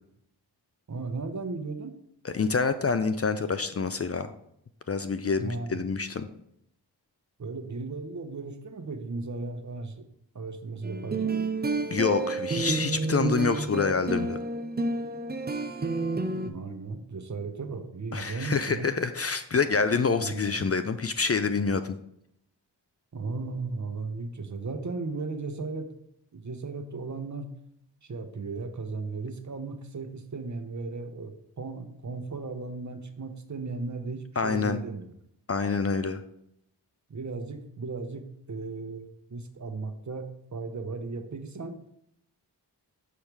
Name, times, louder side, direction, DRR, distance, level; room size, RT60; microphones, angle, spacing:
voice 1, 0.9-2.0 5.4-5.8 7.4-10.0 10.3-11.4 16.4-18.9 20.2-20.7 23.1-25.9 26.3-27.5 28.0-35.1 37.1-41.9, right 3 dB, 45° right, 8 dB, 0.9 m, -36 dB
voice 2, 2.2-4.3 4.9-6.3 11.9-14.4 18.1-22.0 34.4-34.8 35.5-36.2, left 5 dB, 35° left, 10 dB, 0.5 m, -27 dB
sound 1, 10.8-16.5, right 3 dB, 25° right, 0.6 m, -30 dB
5.9 x 5.5 x 3.4 m, 0.75 s
cardioid pair, 40°, 41 cm